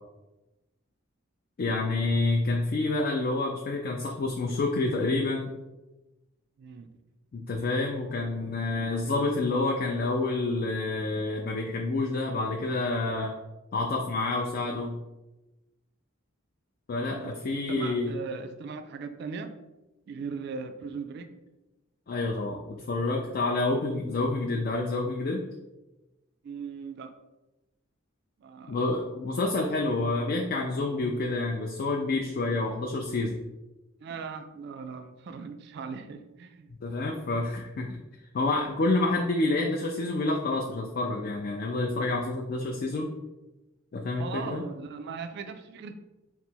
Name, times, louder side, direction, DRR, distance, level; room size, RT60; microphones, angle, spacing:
voice 1, 1.6-5.5 7.3-13.4 13.7-14.9 16.9-18.1 22.1-25.4 28.7-33.4 36.7-38.0 38.3-43.1 43.9-44.6, left 2 dB, 45° left, 1 dB, 0.3 m, -28 dB
voice 2, 17.1-19.5 20.1-21.3 26.4-27.1 28.4-28.8 29.3-29.5 34.0-36.7 44.2-46.0, right 5 dB, 50° right, 8 dB, 0.3 m, -39 dB
3.9 x 2.0 x 4.4 m, 1.0 s
head